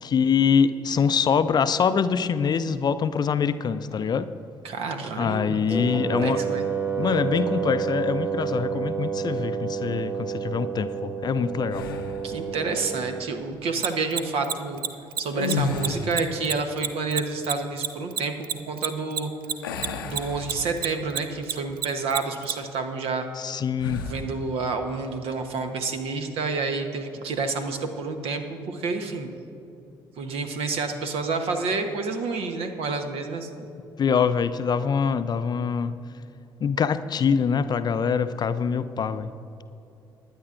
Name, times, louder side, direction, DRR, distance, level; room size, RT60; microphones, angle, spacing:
voice 1, 0.0-4.3 5.2-6.4 7.0-11.8 23.4-24.0 34.0-35.9 36.6-39.3, left 6 dB, 40° left, 12 dB, 0.5 m, -24 dB
voice 2, 4.6-5.6 5.9-6.6 12.2-14.8 15.2-19.3 20.0-23.3 24.1-29.3 30.2-33.5, right 4 dB, 60° right, 6 dB, 1.0 m, -29 dB
Wind instrument woodwind instrument, 5.7-13.3, right 7 dB, 15° right, 1.3 m, -29 dB
sound 1, 11.7-12.3 15.3-16.4 19.6-21.1 21.5-21.7 23.8-24.3, left 4 dB, 85° left, 0.7 m, -31 dB
Mechanisms, 13.8-20.5 20.8-22.5, right 8 dB, 85° right, 0.4 m, -27 dB
21.0 x 9.7 x 2.5 m, 2.8 s
figure-of-eight pair, 50°, 11 cm